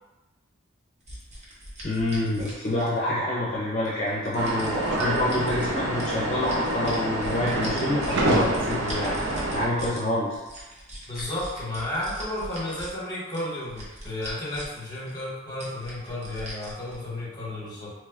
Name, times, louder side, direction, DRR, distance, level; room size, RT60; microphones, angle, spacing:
sound 1, 1.1-3.2 3.8-5.7 6.0-10.0 10.3-12.9 13.3-14.8 15.1-15.2 15.6-16.9, equal, 35° right, 0.8 m, -40 dB
voice 1, 1.8-9.2 9.5-10.4, left 1 dB, 40° left, -7 dB, 0.6 m, -27 dB
sound 2, 4.3-9.7, right 1 dB, 65° right, 0.5 m, -27 dB
voice 2, 11.1-17.9, left 1 dB, 20° left, -6 dB, 1.0 m, -33 dB
3.0 x 2.2 x 3.4 m, 1.1 s
head